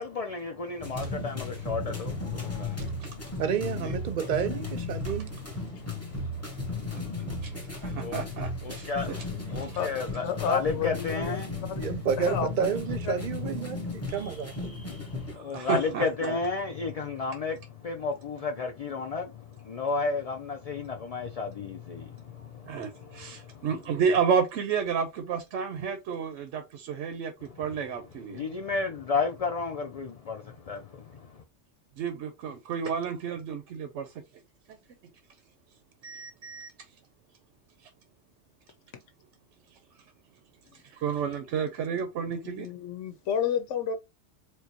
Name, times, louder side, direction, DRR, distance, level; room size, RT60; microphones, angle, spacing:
voice 1, 0.0-3.4 5.6-8.2 8.6-11.9 13.8-14.1 14.7-23.7 27.4-27.7 28.3-31.4, left 4 dB, 60° left, 0.4 m, -34 dB
sound 1, 0.8-15.4, left 3 dB, 15° left, 0.9 m, -35 dB
voice 2, 3.4-5.4 11.8-14.5, right 7 dB, 50° right, 0.6 m, -30 dB
voice 3, 6.9-7.5 7.8-9.2 15.5-16.4 22.7-28.4 32.0-34.1 36.0-36.7 40.9-42.7, right 6 dB, 85° right, 0.9 m, -31 dB
voice 4, 10.2-11.4 11.7-11.8 12.2-12.7 13.1-13.2 42.3-44.0, left 8 dB, 90° left, 1.0 m, -31 dB
4.5 x 2.2 x 2.8 m
omnidirectional pair, 1.2 m